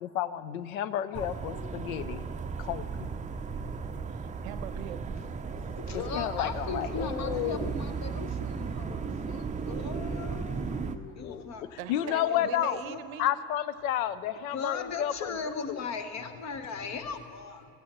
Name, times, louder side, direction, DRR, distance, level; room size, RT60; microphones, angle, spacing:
voice 1, 0.0-2.2 2.6-3.1 5.9-7.7 11.2-11.4 11.9-12.8 13.2-15.8, left 11 dB, 70° left, 15 dB, 0.6 m, -31 dB
sound 1, 1.1-11.0, right 5 dB, 15° right, 0.6 m, -35 dB
voice 2, 2.2-2.5 3.8-5.2 11.8-13.3, right 11 dB, 70° right, 14 dB, 0.7 m, -43 dB
voice 3, 5.7-13.0 14.5-17.6, left 5 dB, 40° left, 9 dB, 1.1 m, -38 dB
16.0 x 15.5 x 3.0 m, 2.6 s
figure-of-eight pair, 65°, 43 cm